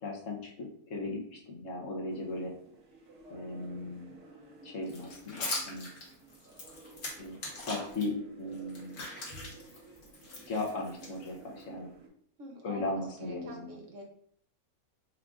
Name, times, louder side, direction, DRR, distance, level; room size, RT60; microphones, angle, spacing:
voice 1, 0.0-2.5 3.3-4.1 4.6-5.9 7.2-9.0 10.5-11.9 12.6-13.7, left 2 dB, 60° left, -1 dB, 1.1 m, -37 dB
sound 1, 2.1-12.1, right 2 dB, 90° right, 1.8 m, -54 dB
sound 2, 4.9-8.0 8.5-11.6, left 2 dB, 85° left, 1.8 m, -41 dB
voice 2, 12.4-14.1, right 1 dB, 60° right, 0 dB, 1.1 m, -46 dB
4.7 x 2.4 x 3.6 m, 0.65 s
omnidirectional pair, 1.6 m